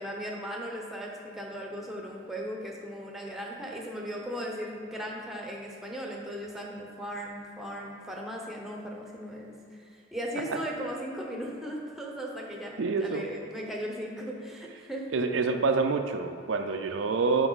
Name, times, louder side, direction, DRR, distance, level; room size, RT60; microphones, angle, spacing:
voice 1, 0.0-15.1, equal, ahead, -1 dB, 0.8 m, -37 dB
voice 2, 12.8-13.3 15.1-17.5, right 4 dB, 70° right, 6 dB, 0.5 m, -27 dB
7.8 x 5.3 x 4.0 m, 2.5 s
head